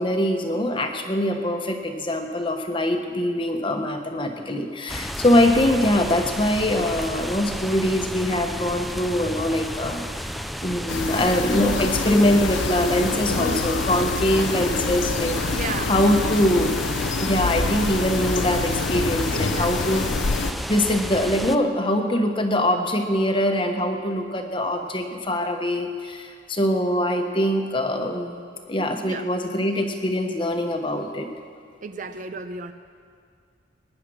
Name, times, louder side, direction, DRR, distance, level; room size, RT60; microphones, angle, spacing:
voice 1, 0.0-10.1 10.6-16.7 17.2-20.0 20.7-31.3, left 1 dB, 25° left, 5 dB, 1.1 m, -23 dB
sound 1, 4.9-21.6, equal, ahead, 0.3 m, -32 dB
voice 2, 9.6-10.0 10.9-11.0 13.4-13.7 14.3-14.5 15.5-15.9 19.3-20.1 25.1-25.2 29.0-29.3 31.8-32.7, right 3 dB, 40° right, 9 dB, 0.6 m, -35 dB
sound 2, 10.9-20.5, left 4 dB, 70° left, 0.7 m, -27 dB
21.0 x 9.9 x 6.3 m, 2.2 s
head